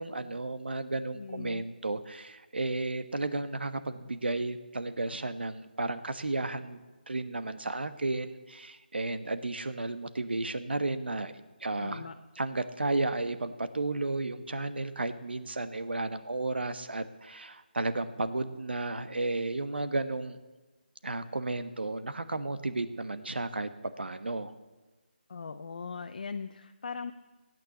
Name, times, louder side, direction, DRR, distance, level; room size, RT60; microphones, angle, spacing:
voice 1, 0.0-11.3 11.6-12.1 12.4-20.4 21.0-23.7 24.0-24.5, right 2 dB, 80° right, 11 dB, 1.2 m, -33 dB
voice 2, 1.1-1.6 11.8-12.2 25.3-27.1, left 5 dB, 55° left, 6 dB, 0.7 m, -39 dB
16.5 x 9.2 x 6.9 m, 1.2 s
figure-of-eight pair, 160°, 6 cm